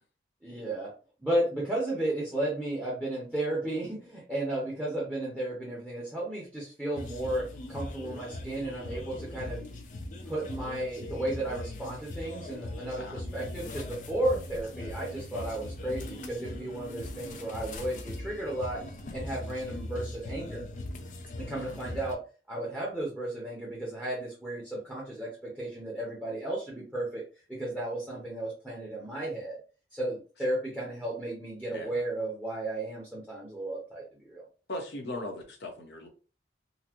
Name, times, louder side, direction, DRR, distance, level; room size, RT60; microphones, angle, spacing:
voice 1, 0.4-0.9 1.2-9.6 10.2-18.8 19.1-20.6 21.4-22.2 22.5-27.2 27.5-29.6 29.9-34.5, right 1 dB, 5° right, -4 dB, 0.9 m, -34 dB
sound 1, 6.9-22.2, left 2 dB, 45° left, 0.4 m, -40 dB
voice 2, 34.7-36.1, left 1 dB, 75° left, 2 dB, 0.9 m, -39 dB
4.0 x 2.1 x 2.9 m, 0.36 s
head